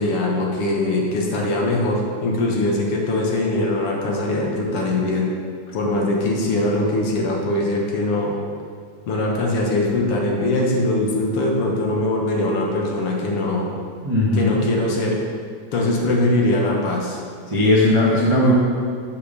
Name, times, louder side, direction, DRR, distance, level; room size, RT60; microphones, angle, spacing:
voice 1, 0.0-5.3 5.7-8.4 9.1-13.7 14.3-15.2 15.7-17.2, left 2 dB, 60° left, -1 dB, 1.8 m, -21 dB
voice 2, 14.0-14.6 17.5-18.5, left 1 dB, 45° right, -6 dB, 0.3 m, -17 dB
8.3 x 5.7 x 6.7 m, 2.1 s
omnidirectional pair, 3.6 m